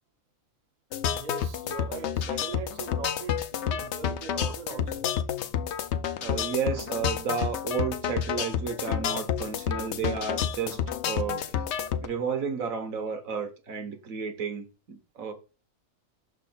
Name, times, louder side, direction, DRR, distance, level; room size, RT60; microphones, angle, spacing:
sound 1, 0.9-12.1, left 8 dB, 65° left, 0.8 m, -30 dB
voice 1, 1.1-5.1, right 6 dB, 50° right, 0.5 m, -40 dB
voice 2, 6.2-10.8 11.1-11.6 12.0-15.3, right 6 dB, 80° right, 1.5 m, -32 dB
6.2 x 4.1 x 4.2 m
omnidirectional pair, 1.4 m